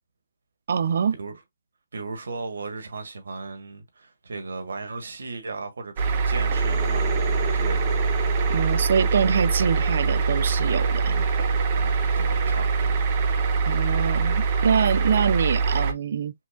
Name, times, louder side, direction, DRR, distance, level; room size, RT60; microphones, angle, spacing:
voice 1, 0.7-1.1 8.5-11.2 13.7-16.3, right 7 dB, 60° right, 0.4 m, -24 dB
voice 2, 1.9-7.2 7.5-8.0 11.7-13.1, right 3 dB, 90° right, 1.4 m, -36 dB
sound 1, 6.0-15.9, right 5 dB, 30° right, 0.8 m, -23 dB
sound 2, 6.4-13.9, left 3 dB, 10° left, 0.9 m, -39 dB
6.2 x 2.4 x 2.4 m
hypercardioid pair, 165°, 0 cm